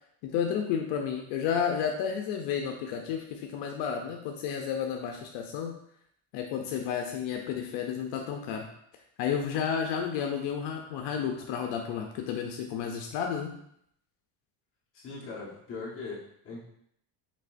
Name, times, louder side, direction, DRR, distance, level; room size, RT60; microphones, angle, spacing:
voice 1, 0.2-5.7 6.3-8.7 9.2-13.5, left 7 dB, 75° left, 2 dB, 0.7 m, -31 dB
voice 2, 14.9-16.6, left 3 dB, 30° left, -5 dB, 1.3 m, -40 dB
5.3 x 3.5 x 2.6 m, 0.71 s
cardioid pair, 165°, 43 cm